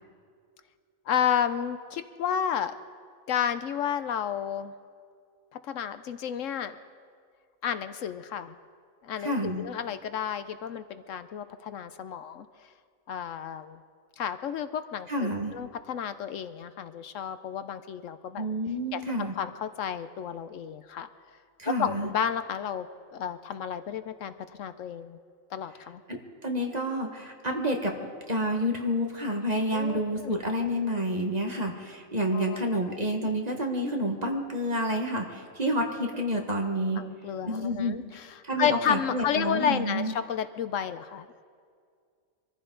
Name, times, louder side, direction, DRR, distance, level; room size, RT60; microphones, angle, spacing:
voice 1, 1.1-2.7 3.3-4.7 5.7-6.8 7.6-8.5 9.0-12.5 13.1-13.8 14.2-18.5 18.9-21.1 21.8-22.9 23.1-24.3 24.6-25.2 25.5-26.0 29.7-30.4 32.3-33.0 37.0-41.3, left 8 dB, 75° left, 11 dB, 1.0 m, -31 dB
voice 2, 9.2-9.6 15.1-15.5 18.4-19.3 21.6-22.1 26.1-37.0 37.5-38.0 38.4-40.1, equal, 30° right, 2 dB, 1.6 m, -29 dB
24.5 x 14.5 x 3.9 m, 2.1 s
omnidirectional pair, 1.4 m